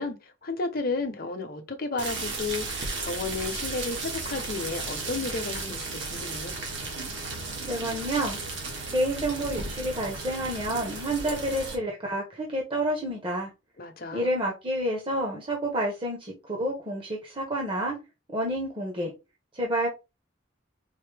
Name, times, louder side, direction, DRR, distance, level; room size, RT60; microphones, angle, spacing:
voice 1, 0.0-6.6 13.8-14.3, left 3 dB, 50° left, 0.9 m, -33 dB
sound 1, 2.0-11.8, right 3 dB, 65° right, 1.5 m, -34 dB
voice 2, 7.6-8.4 8.9-13.5 14.1-18.0 18.3-19.1 19.5-19.9, right 1 dB, 25° right, 1.0 m, -29 dB
4.8 x 2.7 x 3.3 m
head